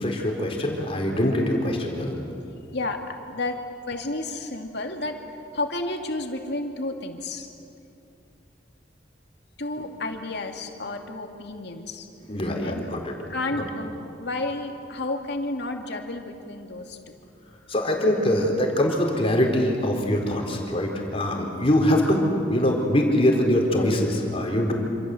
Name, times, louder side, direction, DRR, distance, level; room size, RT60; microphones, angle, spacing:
voice 1, 0.0-2.1 12.3-13.2 17.7-24.7, left 1 dB, 35° left, 1 dB, 4.2 m, -23 dB
voice 2, 2.7-3.6 3.9-5.2 5.5-7.5 9.6-12.1 12.6-12.9 13.3-17.2, left 2 dB, 70° left, 3 dB, 2.5 m, -31 dB
27.0 x 27.0 x 7.9 m, 2.6 s
head